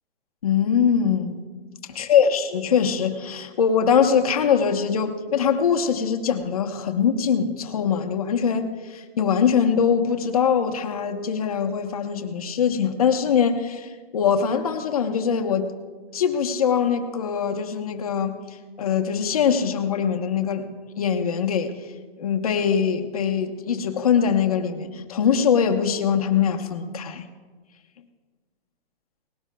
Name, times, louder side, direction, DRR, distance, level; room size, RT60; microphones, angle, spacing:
voice 1, 0.4-1.4 2.0-15.7 16.1-18.4 18.8-20.7 21.0-21.8 22.2-27.2, left 7 dB, 35° left, 4 dB, 1.0 m, -22 dB
19.5 x 17.0 x 2.3 m, 1.4 s
hypercardioid pair, 180°, 30 cm